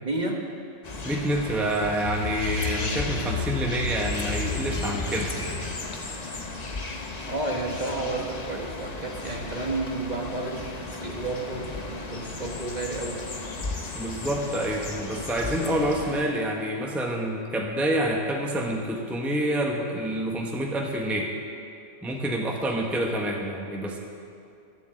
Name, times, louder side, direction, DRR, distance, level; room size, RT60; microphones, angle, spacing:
voice 1, 0.0-0.5 7.3-13.2, right 2 dB, 35° right, 0 dB, 1.2 m, -31 dB
sound 1, 0.8-16.2, left 3 dB, 35° left, 1.0 m, -36 dB
voice 2, 1.0-5.3 13.9-21.3 22.0-24.0, right 1 dB, ahead, 0 dB, 0.9 m, -27 dB
sound 2, 2.0-7.0, left 4 dB, 70° left, 1.8 m, -32 dB
12.0 x 7.6 x 7.6 m, 2.5 s
omnidirectional pair, 1.3 m